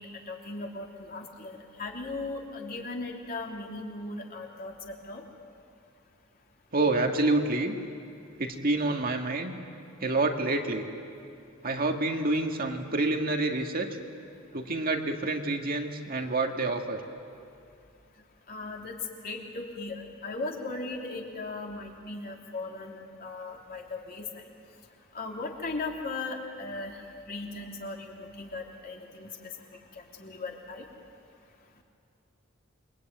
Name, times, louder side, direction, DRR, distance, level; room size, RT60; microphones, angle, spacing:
voice 1, 0.0-5.2 18.5-18.9 19.2-24.4 25.1-27.0 27.3-29.3 29.9-30.8, left 3 dB, 45° left, 0 dB, 3.4 m, -38 dB
voice 2, 6.7-7.8 8.4-9.5 10.0-10.9 11.6-13.9 14.5-17.0, right 2 dB, 45° right, 3 dB, 1.9 m, -28 dB
28.0 x 23.0 x 9.3 m, 2.4 s
head